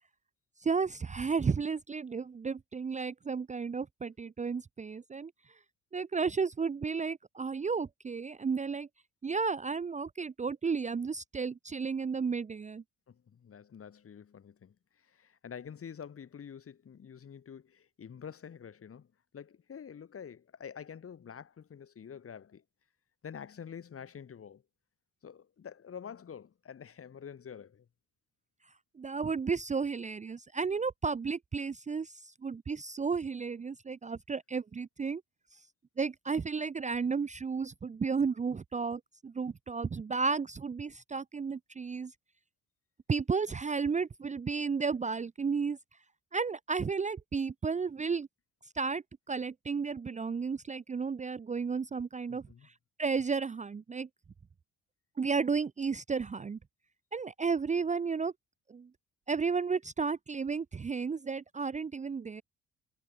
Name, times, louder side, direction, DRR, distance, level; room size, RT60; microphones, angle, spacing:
voice 1, 0.6-5.3 5.9-8.9 9.2-12.8 29.0-35.2 36.0-42.1 43.1-45.8 46.3-48.3 48.7-52.7 53.0-54.1 55.2-56.6 57.1-58.3 58.7-58.9 59.3-62.4, right 5 dB, 25° right, 0.6 m, -33 dB
voice 2, 13.1-19.1 19.3-22.6 23.2-24.6 25.2-27.9 52.3-52.7, left 7 dB, 50° left, 3.5 m, -47 dB
cardioid pair, 90°, 30 cm